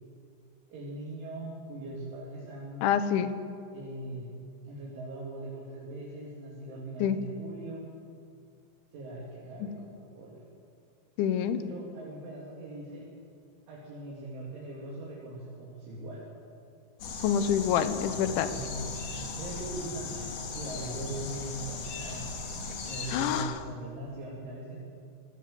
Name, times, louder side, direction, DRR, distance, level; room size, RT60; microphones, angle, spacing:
voice 1, 0.7-2.8 3.7-4.3 4.7-7.8 8.9-10.4 11.6-13.1 13.7-16.3 18.4-18.9 19.4-20.1 20.5-22.3 22.9-24.8, right 2 dB, 75° right, -5 dB, 5.5 m, -40 dB
voice 2, 2.8-3.3 7.0-7.2 9.6-9.7 11.2-11.6 17.2-18.5 23.1-23.6, left 9 dB, 80° left, 11 dB, 3.3 m, -27 dB
sound 1, 17.0-23.4, left 4 dB, 50° left, 3.2 m, -38 dB
25.0 x 17.0 x 7.8 m, 2.4 s
omnidirectional pair, 5.6 m